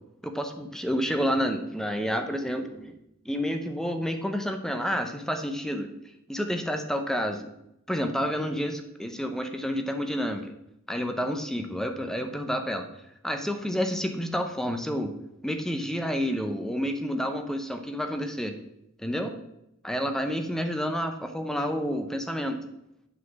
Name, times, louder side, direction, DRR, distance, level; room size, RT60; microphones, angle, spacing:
voice 1, 0.2-2.9 3.3-5.9 6.3-7.5 7.9-10.5 10.9-12.9 13.2-15.1 15.4-18.5 19.0-19.3 19.8-22.6, equal, ahead, 6 dB, 0.6 m, -29 dB
7.8 x 4.2 x 6.9 m, 0.83 s
head